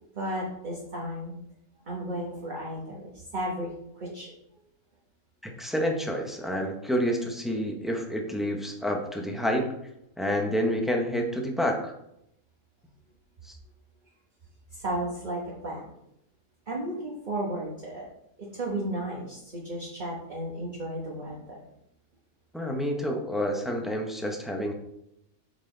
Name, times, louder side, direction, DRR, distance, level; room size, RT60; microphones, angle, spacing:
voice 1, 0.1-1.3 1.9-3.7 4.0-4.3 14.8-15.9 16.7-18.1 18.4-21.6, right 1 dB, 35° right, -4 dB, 1.2 m, -34 dB
voice 2, 5.4-9.7 10.2-11.9 13.4-13.6 22.5-24.7, equal, ahead, 1 dB, 0.5 m, -28 dB
7.1 x 4.1 x 3.8 m, 0.78 s
omnidirectional pair, 1.5 m